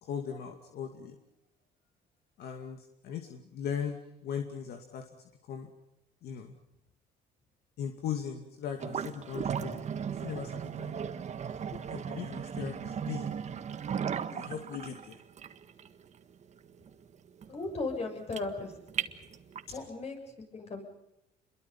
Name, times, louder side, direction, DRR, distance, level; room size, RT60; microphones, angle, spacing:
voice 1, 0.0-1.2 2.4-4.0 4.2-5.1 5.4-5.7 6.2-6.5 7.8-9.9 10.2-11.2 11.7-13.3 14.3-15.2 19.7-19.8, left 8 dB, 70° left, 5 dB, 2.5 m, -38 dB
sound 1, 8.8-19.8, right 7 dB, 40° right, 1.7 m, -37 dB
voice 2, 17.5-18.7 19.7-20.2 20.5-20.8, left 3 dB, 40° left, 4 dB, 7.8 m, -36 dB
28.5 x 22.5 x 5.6 m, 0.84 s
cardioid pair, 110°, 17 cm